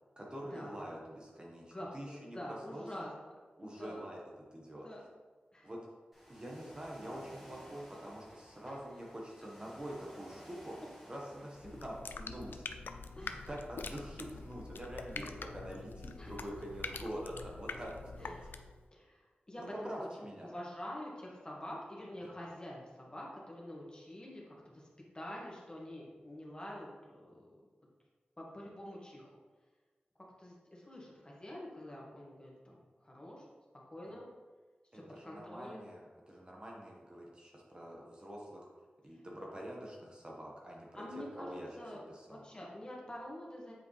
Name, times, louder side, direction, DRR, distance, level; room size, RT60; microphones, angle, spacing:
voice 1, 0.2-3.1 3.6-4.2 4.5-4.9 5.6-5.8 6.3-10.8 11.1-12.7 13.2-17.9 18.2-18.3 19.6-20.5 34.9-38.6 39.0-42.4, right 1 dB, 30° right, -2 dB, 1.3 m, -45 dB
voice 2, 1.7-3.1 3.6-4.0 4.7-5.0 5.5-5.7 8.7-8.8 13.1-13.5 15.1-15.4 16.2-16.3 18.2-18.6 18.9-20.1 20.4-24.9 25.1-27.5 28.4-29.3 30.4-33.5 33.9-34.3 34.9-35.9 41.0-41.5 41.8-42.0 42.3-43.7, left 1 dB, 30° left, -3 dB, 1.8 m, -47 dB
Ocean, 6.1-12.0, equal, 5° right, 2.1 m, -56 dB
sound 1, 11.6-18.8, left 4 dB, 90° left, 0.4 m, -45 dB
7.5 x 5.0 x 3.3 m, 1.3 s
wide cardioid pair, 70°, 3 cm